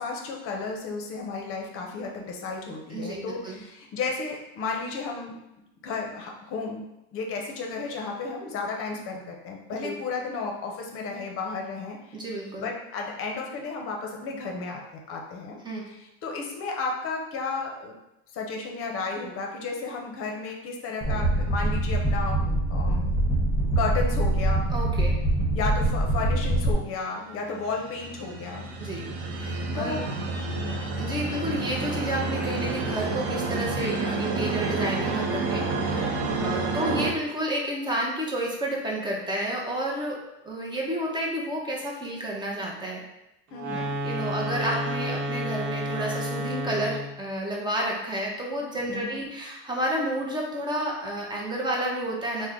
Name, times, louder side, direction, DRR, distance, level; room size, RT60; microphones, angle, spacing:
voice 1, 0.0-5.4 5.8-6.9 7.1-12.2 12.6-15.6 15.9-18.0 18.3-22.4 22.7-23.2 23.8-24.7 25.5-28.7 29.7-30.0 30.6-30.9 36.2-36.6 43.5-44.0 48.9-49.2, left 4 dB, 40° left, 1 dB, 0.7 m, -33 dB
voice 2, 2.9-3.6 9.8-10.0 12.1-12.7 15.6-15.9 24.7-25.2 28.8-30.0 31.0-43.0 44.0-52.5, right 1 dB, 15° right, -1 dB, 0.6 m, -31 dB
sound 1, 21.0-26.7, right 1 dB, 15° left, 0.9 m, -24 dB
sound 2, 27.4-37.1, right 3 dB, 90° right, 0.6 m, -29 dB
sound 3, 43.5-47.2, equal, 50° right, 1.0 m, -31 dB
3.2 x 2.1 x 3.7 m, 0.89 s
supercardioid pair, 120°, 33 cm